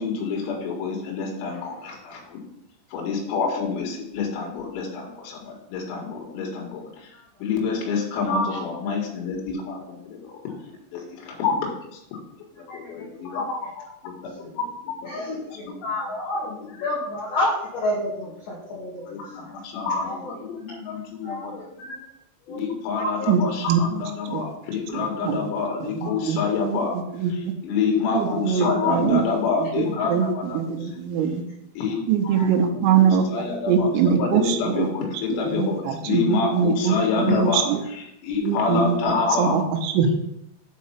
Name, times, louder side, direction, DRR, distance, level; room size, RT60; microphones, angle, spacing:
voice 1, 0.0-2.4 2.9-7.1 7.4-10.4 10.9-12.2 12.7-15.8 16.8-16.9 18.7-18.8 19.1-22.0 22.5-27.0 27.3-30.9 31.8-32.0 32.7-39.6, left 5 dB, 85° left, 0 dB, 4.4 m, -28 dB
voice 2, 12.8-13.4 15.1-19.5 20.0-20.3 20.7-20.8 21.2-21.6 22.5-22.6 23.2-23.3 32.3-32.5, left 1 dB, 50° left, -9 dB, 3.2 m, -30 dB
voice 3, 24.9-25.4 25.8-26.9 27.2-27.5 28.2-29.2 29.6-31.4 32.1-34.9 35.4-37.8 38.4-39.0 39.4-40.1, right 7 dB, 85° right, 3 dB, 3.6 m, -23 dB
8.9 x 4.2 x 5.6 m, 0.81 s
omnidirectional pair, 5.9 m